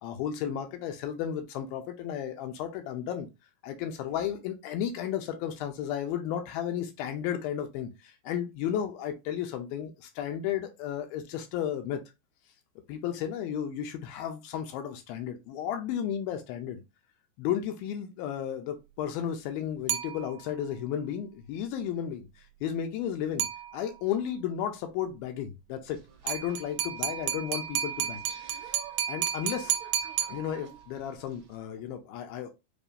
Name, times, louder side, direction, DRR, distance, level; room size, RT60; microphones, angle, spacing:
voice 1, 0.0-3.3 3.6-12.0 12.9-16.8 17.4-23.5 23.7-28.2 28.6-28.8 29.1-29.8 30.3-32.5, left 9 dB, 80° left, 2.5 m, -33 dB
sound 1, 19.9-20.7 23.4-24.2 26.3-31.0, right 10 dB, 85° right, 2.4 m, -33 dB
sound 2, 25.8-31.6, right 6 dB, 55° right, 2.1 m, -54 dB
6.7 x 2.7 x 2.6 m
omnidirectional pair, 4.4 m